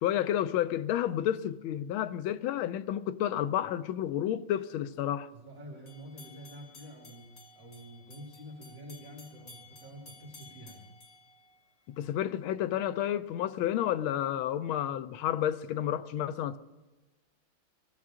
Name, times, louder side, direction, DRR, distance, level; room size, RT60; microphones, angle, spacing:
voice 1, 0.0-5.3 11.9-16.6, left 11 dB, 90° left, 1.5 m, -31 dB
voice 2, 5.3-10.9, equal, 40° right, 3.1 m, -48 dB
sound 1, 5.9-12.1, left 3 dB, 50° left, 1.8 m, -55 dB
20.5 x 14.5 x 3.7 m
omnidirectional pair, 2.2 m